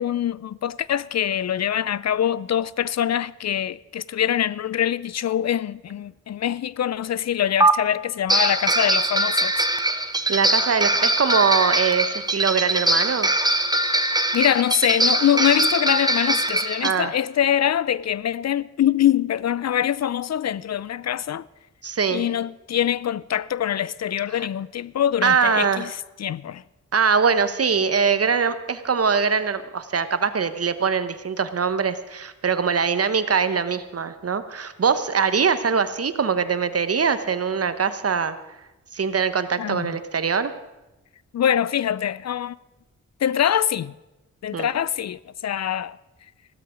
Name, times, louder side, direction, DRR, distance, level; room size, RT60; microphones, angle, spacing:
voice 1, 0.0-9.6 14.3-21.5 22.1-26.6 39.6-40.0 41.3-42.6 43.2-43.9 44.4-46.0, left 10 dB, 60° left, 0.4 m, -24 dB
sound 1, 7.6-7.7 8.3-16.9, right 1 dB, 15° right, 1.0 m, -22 dB
voice 2, 10.3-13.3 16.8-17.1 21.8-22.2 24.3-24.5 25.2-25.9 26.9-38.3 38.9-40.5 44.5-44.7, right 6 dB, 50° right, 1.0 m, -22 dB
15.5 x 12.5 x 5.1 m
cardioid pair, 65°, 30 cm